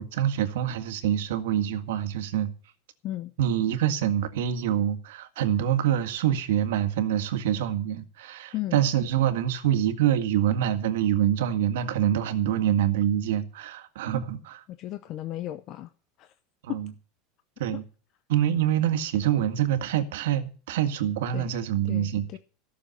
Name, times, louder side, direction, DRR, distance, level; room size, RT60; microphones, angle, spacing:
voice 1, 0.0-2.5 3.4-14.6 16.6-16.9 17.6-17.8 18.3-22.4, right 10 dB, 85° right, 1.8 m, -26 dB
voice 2, 8.5-8.8 14.7-15.9 16.2-16.3 16.7-16.8 21.3-21.5 21.9-22.4, left 14 dB, 35° left, 0.7 m, -34 dB
15.5 x 6.9 x 8.1 m
supercardioid pair, 170°, 0 cm